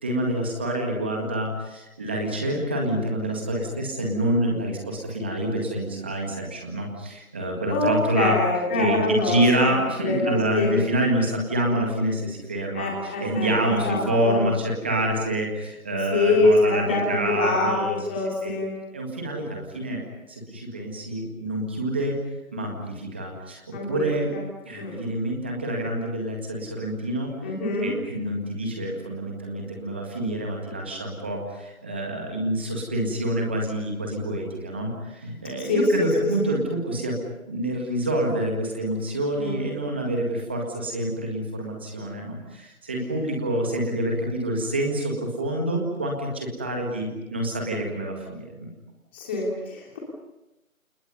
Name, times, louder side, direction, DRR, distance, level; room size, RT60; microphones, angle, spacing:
voice 1, 0.0-18.5 18.9-20.0 20.3-22.2 22.5-24.3 24.7-27.3 27.8-37.2 37.4-48.7, right 1 dB, 10° right, 1 dB, 1.8 m, -27 dB
voice 2, 7.7-9.7 10.0-10.8 12.7-14.4 16.1-18.7 23.7-24.4 24.7-25.0 27.4-27.9 35.6-36.1 39.4-39.6 49.1-50.0, left 2 dB, 10° left, -2 dB, 3.3 m, -24 dB
29.5 x 28.5 x 5.4 m, 0.96 s
figure-of-eight pair, 170°, 42 cm